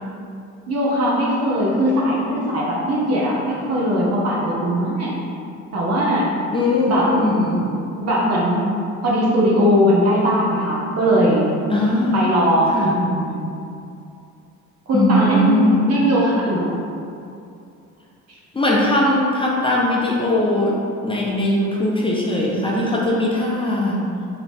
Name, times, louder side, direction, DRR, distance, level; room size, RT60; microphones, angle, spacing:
voice 1, 0.7-5.1 5.7-6.3 6.9-7.1 8.0-8.6 9.0-11.4 12.1-13.4 14.9-16.8, equal, 55° right, -5 dB, 1.1 m, -19 dB
voice 2, 6.5-7.7 11.7-12.3 12.7-12.9 14.9-15.9 18.5-24.0, left 1 dB, 15° left, -4 dB, 0.6 m, -20 dB
3.1 x 2.9 x 4.3 m, 2.5 s
cardioid pair, 90°, 30 cm